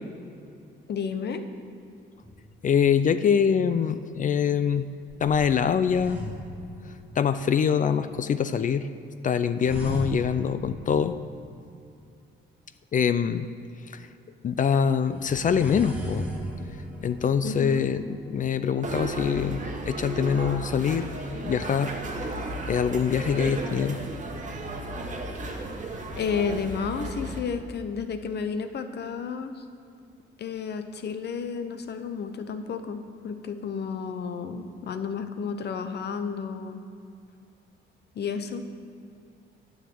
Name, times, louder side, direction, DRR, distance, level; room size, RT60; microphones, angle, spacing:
voice 1, 0.9-1.5 17.4-17.9 26.1-29.6 30.4-36.8 38.1-38.6, left 6 dB, 55° left, 9 dB, 0.8 m, -32 dB
sound 1, 2.2-3.1 5.1-7.4 9.6-11.7 15.1-19.7, equal, 5° right, 1.6 m, -38 dB
voice 2, 2.6-4.9 5.2-6.2 7.2-8.9 9.2-11.2 12.9-13.5 13.9-14.1 14.4-16.3 17.0-21.1 21.4-21.9 22.4-24.0, left 7 dB, 40° left, 12 dB, 0.4 m, -24 dB
sound 2, 18.8-27.4, right 1 dB, 40° right, 1.4 m, -34 dB
9.0 x 6.6 x 7.6 m, 2.5 s
cardioid pair, 90°, 20 cm